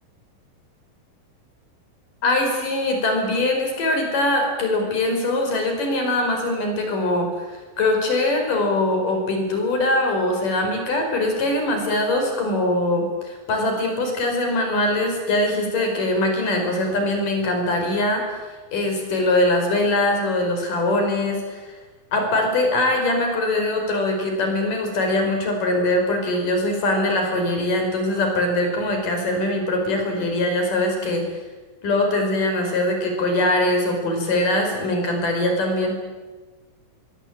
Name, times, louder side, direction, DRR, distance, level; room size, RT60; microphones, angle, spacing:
voice 1, 2.2-18.4 18.7-21.6 22.1-31.2 31.8-36.0, left 1 dB, 65° left, 3 dB, 6.8 m, -22 dB
24.5 x 23.0 x 8.8 m, 1.3 s
omnidirectional pair, 4.1 m